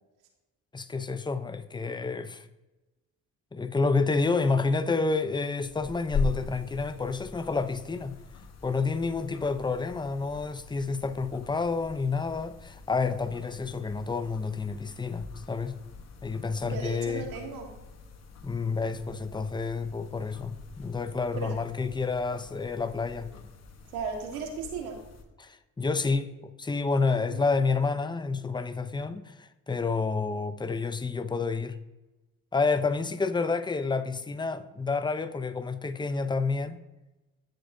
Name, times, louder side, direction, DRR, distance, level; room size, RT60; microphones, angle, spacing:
voice 1, 0.7-2.4 3.5-8.1 8.6-15.8 16.2-17.2 18.4-23.3 25.4-31.8 32.5-36.8, left 4 dB, 15° left, 0.6 m, -29 dB
sound 1, 5.6-25.2, left 4 dB, 45° left, 1.2 m, -42 dB
voice 2, 16.6-17.7 21.4-21.6 23.9-25.0 27.1-27.6, right 5 dB, 90° right, 1.7 m, -36 dB
11.5 x 7.8 x 2.7 m
supercardioid pair, 70°, 36 cm